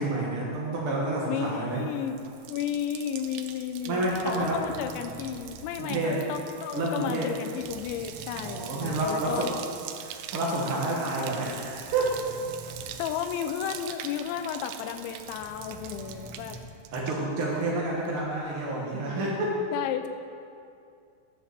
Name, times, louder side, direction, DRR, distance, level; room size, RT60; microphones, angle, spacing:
voice 1, 0.0-1.8 3.8-4.6 5.8-6.2 6.7-7.3 8.4-9.5 10.0-12.2 16.9-19.6, right 2 dB, 65° right, -4 dB, 1.3 m, -29 dB
voice 2, 1.2-2.2 2.5-9.5 13.0-16.6 19.7-20.1, left 9 dB, 85° left, 7 dB, 2.9 m, -33 dB
Bathtub (filling or washing), 1.7-17.8 18.1-18.6, right 10 dB, 85° right, 2.3 m, -44 dB
sound 1, 4.1-5.7 7.6-9.4 9.7-10.0 11.4-13.1 15.2-16.7, right 2 dB, 10° right, 2.5 m, -46 dB
16.0 x 6.7 x 6.8 m, 2.4 s
omnidirectional pair, 5.3 m